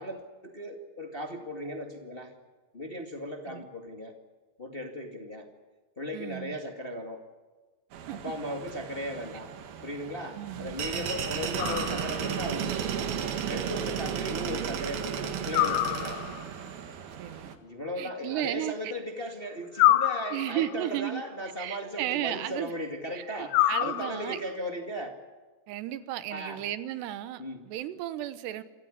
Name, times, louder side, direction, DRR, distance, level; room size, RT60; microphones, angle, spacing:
voice 1, 0.0-2.3 2.7-4.1 4.6-5.5 6.0-7.2 8.1-9.5 9.8-13.2 13.5-16.2 17.6-25.2 26.3-26.6 27.4-27.6, equal, 25° left, 3 dB, 1.1 m, -37 dB
voice 2, 6.1-6.6 8.1-8.2 10.3-11.1 17.2-17.5 18.0-19.0 20.3-21.2 21.6-22.7 23.1-24.4 25.7-28.6, right 13 dB, 85° right, 13 dB, 3.2 m, -34 dB
sound 1, 7.9-17.5, right 8 dB, 65° right, 3.4 m, -34 dB
sound 2, 11.6-12.4 15.5-16.5 19.8-20.8 23.5-24.5, left 14 dB, 75° left, 2.0 m, -26 dB
27.0 x 14.5 x 10.0 m, 1.3 s
omnidirectional pair, 4.8 m